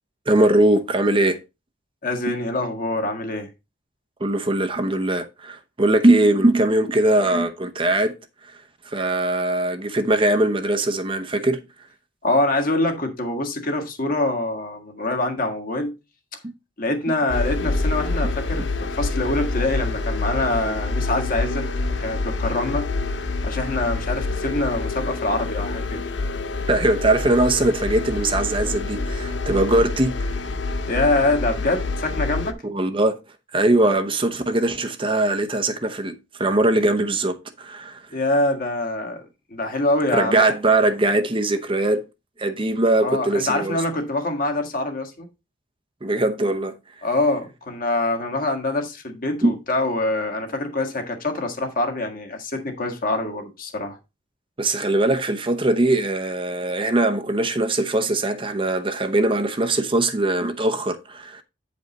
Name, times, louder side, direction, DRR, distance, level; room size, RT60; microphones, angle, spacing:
voice 1, 0.3-1.4 4.2-8.1 8.9-11.6 26.7-30.1 32.6-33.2 33.5-38.0 40.1-42.0 42.4-43.8 46.0-46.8 49.4-49.6 54.6-61.4, right 2 dB, 30° right, 0.8 m, -21 dB
voice 2, 2.0-3.5 12.2-15.9 16.8-21.6 22.0-22.9 23.4-26.0 30.9-32.6 38.1-39.2 39.5-40.5 43.0-45.3 47.0-54.0, left 2 dB, 50° left, 1.8 m, -24 dB
sound 1, 17.3-32.5, left 3 dB, 75° left, 0.8 m, -27 dB
9.0 x 5.2 x 4.0 m
head